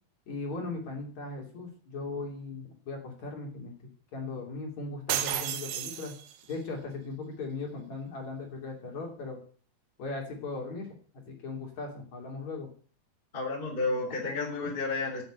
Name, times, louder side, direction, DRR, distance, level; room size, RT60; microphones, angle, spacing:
voice 1, 0.3-3.7 4.1-6.1 6.5-9.4 10.0-10.9 11.3-12.7, left 3 dB, 45° left, 1 dB, 4.0 m, -38 dB
sound 1, 5.1-6.6, right 11 dB, 80° right, 3.1 m, -32 dB
voice 2, 13.3-15.2, left 3 dB, 15° left, 1 dB, 3.2 m, -31 dB
11.5 x 8.6 x 9.0 m, 0.44 s
omnidirectional pair, 4.6 m